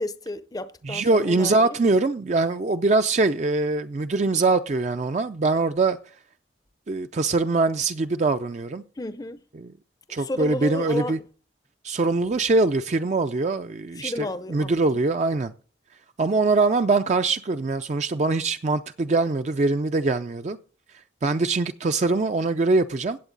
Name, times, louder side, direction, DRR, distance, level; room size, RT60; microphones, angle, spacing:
voice 1, 0.0-1.8 9.0-9.4 10.1-11.2 14.0-14.8, left 1 dB, 20° left, 0.5 m, -32 dB
voice 2, 0.8-6.0 6.9-8.8 9.6-9.7 10.1-11.2 11.8-15.5 16.2-20.6 21.2-23.2, right 3 dB, 40° right, 0.4 m, -23 dB
16.5 x 7.9 x 3.9 m
head